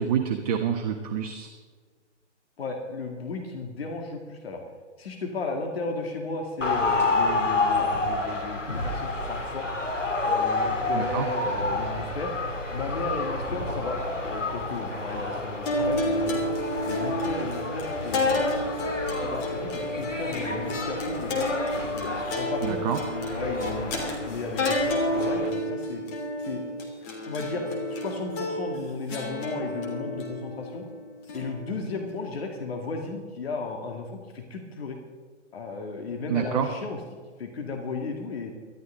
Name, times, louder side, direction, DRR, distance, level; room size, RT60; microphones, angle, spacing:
voice 1, 0.0-1.5 10.9-11.3 22.6-23.0 36.3-36.7, right 8 dB, 30° right, 3 dB, 1.3 m, -27 dB
voice 2, 2.6-4.6 5.0-9.7 10.2-12.3 12.7-16.5 16.9-18.7 19.0-21.5 21.9-22.8 23.1-26.0 26.4-26.6 27.2-30.9 31.3-35.0 35.5-37.0 37.4-38.5, left 3 dB, 55° left, 3 dB, 2.3 m, -34 dB
sound 1, 6.6-25.5, left 2 dB, 90° left, 2.3 m, -30 dB
sound 2, 15.7-32.1, left 1 dB, 25° left, 3.1 m, -30 dB
19.5 x 13.5 x 3.9 m, 1.5 s
figure-of-eight pair, 130°, 36 cm